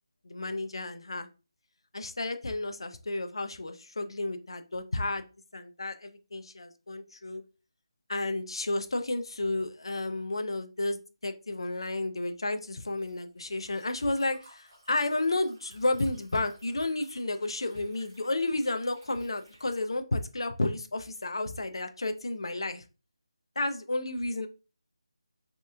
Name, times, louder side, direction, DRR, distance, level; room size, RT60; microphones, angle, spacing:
voice 1, 0.2-1.3 1.9-5.2 5.5-7.4 8.1-22.8 23.6-24.5, left 2 dB, 60° left, 8 dB, 0.4 m, -32 dB
Liquid, 11.9-19.9, right 1 dB, 15° right, 0.8 m, -59 dB
3.2 x 2.9 x 2.2 m, 0.32 s
figure-of-eight pair, 175°, 3 cm